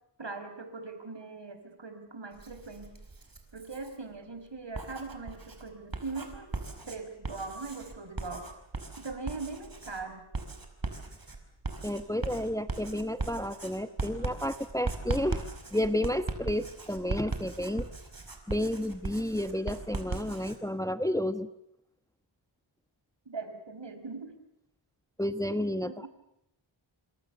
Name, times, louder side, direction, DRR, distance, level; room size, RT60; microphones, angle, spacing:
voice 1, 0.2-2.9 3.5-6.5 6.9-8.5 9.0-10.2 23.2-24.3 25.9-26.1, right 3 dB, 60° right, 9 dB, 5.0 m, -40 dB
Writing, 2.3-4.0 4.6-20.6, right 3 dB, 45° right, 5.0 m, -38 dB
voice 2, 11.8-15.4 15.7-17.9 18.5-21.5 25.2-26.1, left 1 dB, 5° left, 11 dB, 1.1 m, -31 dB
28.0 x 26.5 x 6.9 m, 0.80 s
wide cardioid pair, 75°, 49 cm